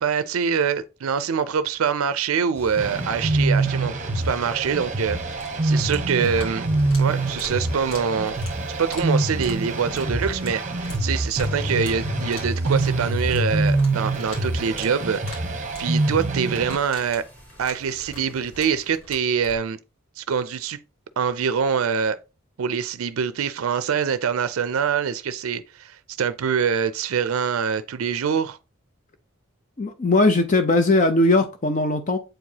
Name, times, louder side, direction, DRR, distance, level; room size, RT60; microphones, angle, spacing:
voice 1, 0.0-6.7 7.0-8.4 8.8-10.6 11.0-15.2 15.8-17.2 17.6-19.8 20.2-20.8 21.2-22.2 22.6-28.6, right 6 dB, 85° right, 0.4 m, -24 dB
sound 1, 2.5-18.9, right 1 dB, 10° left, 2.5 m, -48 dB
sound 2, 2.8-16.8, right 2 dB, 35° right, 0.8 m, -25 dB
sound 3, 5.3-19.6, left 1 dB, 70° left, 2.8 m, -44 dB
voice 2, 29.8-32.2, left 2 dB, 35° left, 0.5 m, -19 dB
7.6 x 4.7 x 2.8 m
head